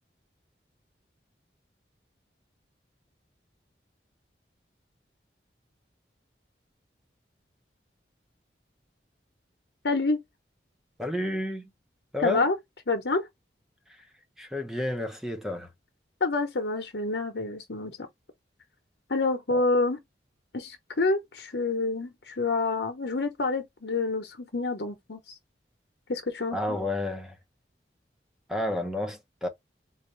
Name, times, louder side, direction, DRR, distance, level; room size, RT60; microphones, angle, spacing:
voice 1, 9.8-10.2 12.2-12.5 12.9-13.3 16.2-17.9 19.1-20.0 20.5-25.3 26.1-26.8, left 3 dB, 80° left, 1.0 m, -28 dB
voice 2, 11.0-11.7 12.1-12.4 14.4-15.7 19.5-19.6 26.5-27.4 28.5-29.5, left 1 dB, 5° right, 0.9 m, -30 dB
4.2 x 2.6 x 3.2 m
head